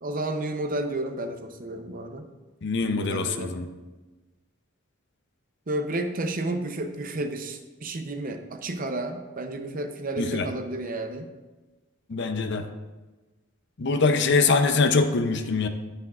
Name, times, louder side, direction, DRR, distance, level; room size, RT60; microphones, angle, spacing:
voice 1, 0.0-2.3 2.8-3.6 5.7-11.3, right 2 dB, 40° right, 6 dB, 0.7 m, -31 dB
voice 2, 2.6-3.7 10.2-10.5 12.1-12.7 13.8-15.7, left 4 dB, 55° left, 8 dB, 0.6 m, -23 dB
10.0 x 9.8 x 2.4 m, 1.2 s
head